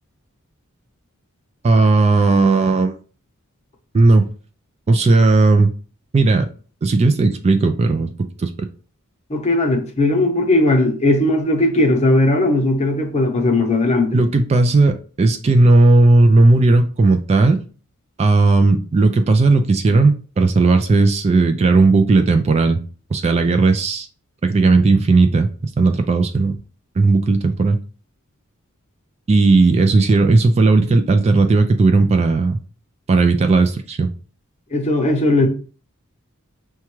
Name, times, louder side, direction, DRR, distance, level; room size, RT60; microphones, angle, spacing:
voice 1, 1.6-2.9 3.9-4.3 4.9-5.7 6.1-6.5 6.8-8.1 8.4-8.7 14.1-17.6 18.2-22.8 23.1-24.1 24.4-26.6 27.0-27.8 29.3-32.6 33.1-34.1, right 3 dB, 30° right, 0.3 m, -15 dB
voice 2, 9.3-14.2 34.7-35.5, left 2 dB, 30° left, 0.8 m, -17 dB
5.8 x 2.2 x 3.0 m
head